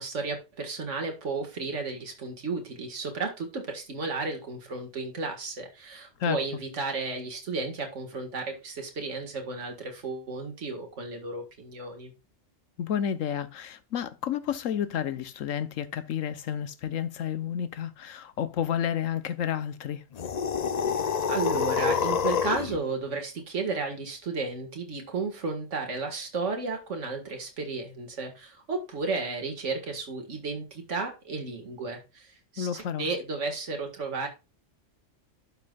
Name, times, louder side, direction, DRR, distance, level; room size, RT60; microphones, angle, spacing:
voice 1, 0.0-12.1 21.3-34.3, right 3 dB, 70° right, 2.1 m, -33 dB
voice 2, 12.8-20.0 32.6-33.1, left 9 dB, 80° left, 1.2 m, -31 dB
sound 1, 20.1-22.8, left 7 dB, 50° left, 0.5 m, -27 dB
12.0 x 5.6 x 2.4 m
omnidirectional pair, 1.3 m